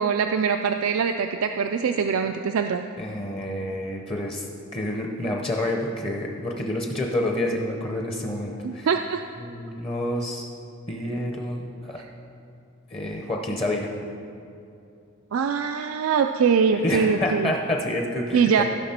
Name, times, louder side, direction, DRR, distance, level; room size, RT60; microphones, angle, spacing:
voice 1, 0.0-2.8 8.6-9.2 12.0-12.1 15.3-17.5 18.3-18.6, right 6 dB, 85° right, 6 dB, 0.4 m, -23 dB
voice 2, 3.0-4.4 4.7-8.9 9.4-10.5 10.9-12.0 12.9-13.9 16.7-18.6, left 1 dB, 25° left, 1 dB, 0.7 m, -28 dB
15.0 x 6.0 x 4.3 m, 2.6 s
head